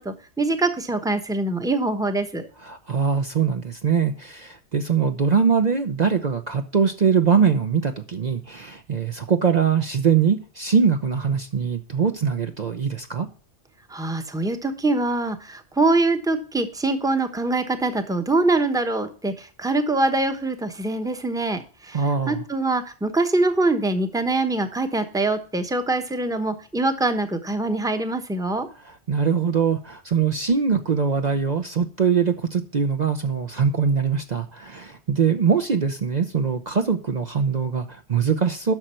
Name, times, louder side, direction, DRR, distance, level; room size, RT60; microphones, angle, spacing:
voice 1, 0.0-2.4 13.9-28.7, right 2 dB, 5° right, 8 dB, 0.9 m, -24 dB
voice 2, 2.6-13.3 21.9-22.4 29.1-38.7, right 6 dB, 45° right, 6 dB, 0.8 m, -22 dB
11.0 x 6.4 x 4.3 m, 0.38 s
omnidirectional pair, 1.1 m